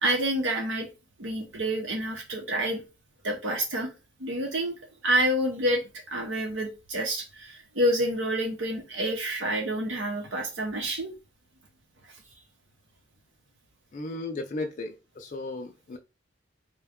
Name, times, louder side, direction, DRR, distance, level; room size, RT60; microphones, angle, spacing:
voice 1, 0.0-0.9 1.2-2.8 3.2-3.9 4.2-5.8 6.1-11.1, right 1 dB, 80° right, 0.8 m, -28 dB
voice 2, 13.9-16.0, left 2 dB, 40° left, 0.4 m, -35 dB
3.6 x 2.2 x 3.5 m
head